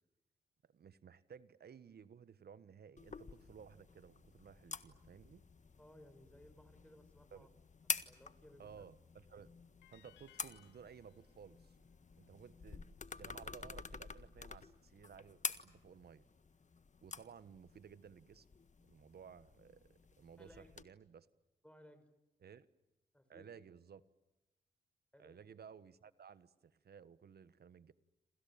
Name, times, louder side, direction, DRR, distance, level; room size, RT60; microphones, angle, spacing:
voice 1, 0.7-5.4 7.3-7.5 8.6-9.5 9.9-11.8 12.2-12.9 13.2-16.2 17.0-18.5 18.8-21.3 22.4-22.7 23.3-24.0 25.2-27.9, right 7 dB, 60° right, 15 dB, 1.4 m, -57 dB
sound 1, 3.0-20.8, left 5 dB, 40° left, 1.6 m, -49 dB
voice 2, 5.8-7.5 7.8-8.8 20.4-20.7 21.6-22.0 23.1-23.5 25.1-25.4, left 1 dB, 5° left, 10 dB, 5.5 m, -61 dB
sound 2, 9.8-13.0, left 14 dB, 90° left, 1.2 m, -68 dB
28.5 x 27.0 x 7.3 m, 0.98 s
supercardioid pair, 45°, 19 cm